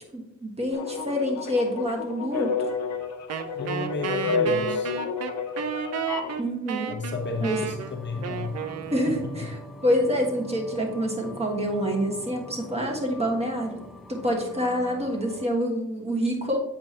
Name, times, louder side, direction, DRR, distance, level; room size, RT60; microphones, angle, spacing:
voice 1, 0.1-2.7 6.4-7.0 7.4-7.6 8.9-13.8 14.1-16.6, equal, 20° right, 1 dB, 1.4 m, -27 dB
sound 1, 0.7-6.4, left 4 dB, 65° left, 1.0 m, -30 dB
Wind instrument woodwind instrument, 3.3-9.6, right 8 dB, 55° right, 0.6 m, -33 dB
voice 2, 3.6-4.9 6.9-8.5 9.2-9.4, left 3 dB, 35° left, 3 dB, 0.8 m, -32 dB
sound 2, 7.1-15.5, left 1 dB, ahead, 0.4 m, -43 dB
7.7 x 4.8 x 2.8 m, 0.88 s
cardioid pair, 90°, 30 cm